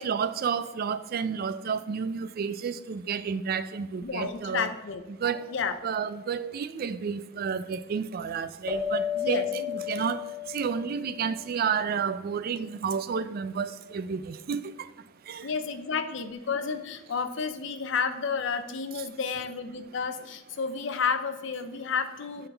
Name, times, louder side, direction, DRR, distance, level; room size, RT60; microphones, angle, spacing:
voice 1, 0.0-4.7 5.1-5.6 5.8-14.9 15.2-15.5, right 6 dB, 50° right, 0.3 m, -31 dB
voice 2, 4.0-5.0 5.5-5.7 9.1-9.5 15.4-22.5, left 5 dB, 70° left, 0.6 m, -31 dB
sound 1, 8.7-11.7, left 8 dB, 25° left, 0.9 m, -33 dB
10.0 x 3.9 x 3.4 m
head